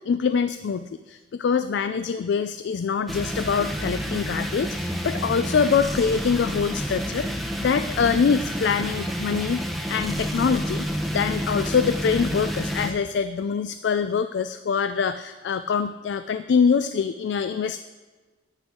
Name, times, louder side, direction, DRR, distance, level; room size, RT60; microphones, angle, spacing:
voice 1, 0.0-9.6 9.9-17.8, left 6 dB, 75° left, 11 dB, 0.3 m, -24 dB
sound 1, 3.1-12.9, equal, ahead, 0.7 m, -29 dB
9.8 x 9.5 x 3.7 m, 1.3 s
head